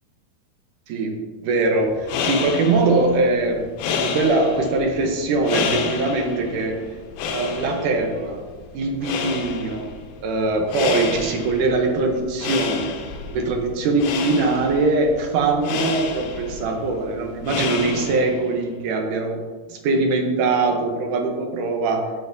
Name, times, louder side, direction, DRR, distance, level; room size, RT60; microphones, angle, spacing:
voice 1, 0.9-1.2 1.4-6.8 7.3-8.4 8.7-9.9 10.2-13.0 13.3-19.4 19.7-22.1, right 3 dB, 75° right, 3 dB, 1.9 m, -22 dB
sound 1, 1.9-18.5, left 6 dB, 75° left, 2.5 m, -30 dB
14.5 x 5.7 x 2.6 m, 1.4 s
omnidirectional pair, 4.6 m